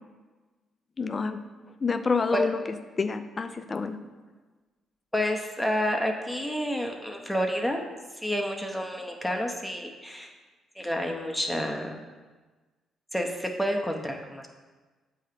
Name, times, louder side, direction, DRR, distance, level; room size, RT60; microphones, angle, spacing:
voice 1, 1.0-1.4 1.8-2.6 3.0-4.0, left 4 dB, 35° left, 9 dB, 0.4 m, -28 dB
voice 2, 5.1-7.8 8.2-10.3 10.8-11.9 13.1-14.5, equal, 5° left, 2 dB, 0.7 m, -29 dB
7.7 x 2.8 x 5.0 m, 1.3 s
cardioid pair, 90°, 0 cm